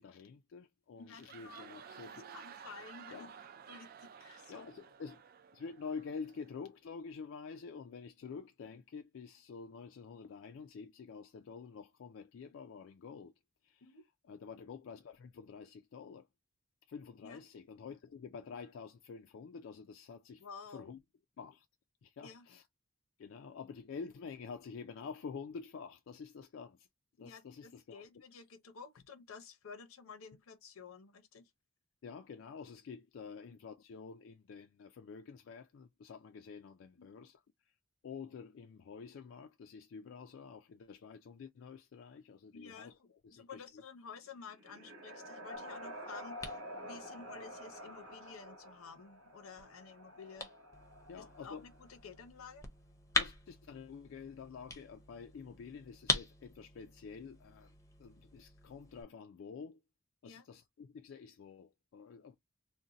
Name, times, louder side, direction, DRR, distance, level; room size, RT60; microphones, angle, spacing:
voice 1, 0.0-2.2 3.1-3.3 4.5-5.2 5.5-13.3 13.6-13.9 14.3-16.3 16.9-21.0 21.4-21.7 22.0-22.6 23.2-26.9 27.2-28.0 32.0-37.4 38.0-43.6 51.1-51.7 53.1-57.7 58.0-59.8 60.2-62.4, left 5 dB, 65° left, 0.3 m, -48 dB
voice 2, 1.0-1.8 2.3-3.3 3.7-4.7 13.8-14.0 17.2-17.4 20.4-20.9 22.2-22.5 27.2-31.5 33.4-33.6 37.0-37.2 42.5-50.5 51.2-52.7 60.2-60.4, left 5 dB, 85° left, 0.7 m, -52 dB
sound 1, 1.0-6.6, right 7 dB, 45° right, 0.3 m, -53 dB
sound 2, 44.2-52.1, equal, 80° right, 1.1 m, -49 dB
sound 3, 45.5-59.0, left 3 dB, 15° left, 0.6 m, -43 dB
2.6 x 2.1 x 3.8 m
head